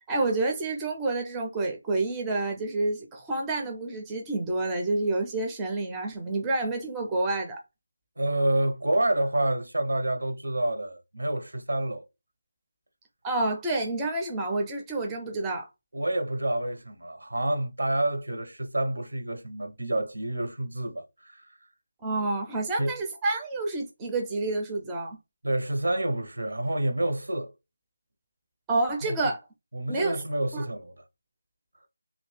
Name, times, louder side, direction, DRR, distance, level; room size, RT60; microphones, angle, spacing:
voice 1, 0.0-7.6 13.2-15.7 22.0-25.2 28.7-29.4 29.9-30.2 30.5-30.6, right 2 dB, 10° right, 0.4 m, -29 dB
voice 2, 8.2-12.0 15.9-21.5 22.8-22.9 25.4-27.5 29.0-29.1 29.7-30.9, right 1 dB, 85° right, 1.0 m, -28 dB
2.6 x 2.5 x 3.1 m
figure-of-eight pair, 170°, 0 cm